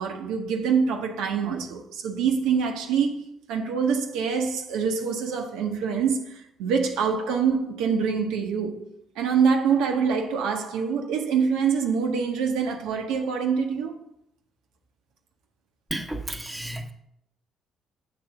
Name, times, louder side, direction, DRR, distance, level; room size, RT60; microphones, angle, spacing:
voice 1, 0.0-3.2 3.5-8.8 9.2-13.9, right 6 dB, 80° right, 0.8 m, -25 dB
voice 2, 15.9-16.9, right 1 dB, 10° right, 1.0 m, -32 dB
6.9 x 3.3 x 5.8 m
hypercardioid pair, 55°, 0 cm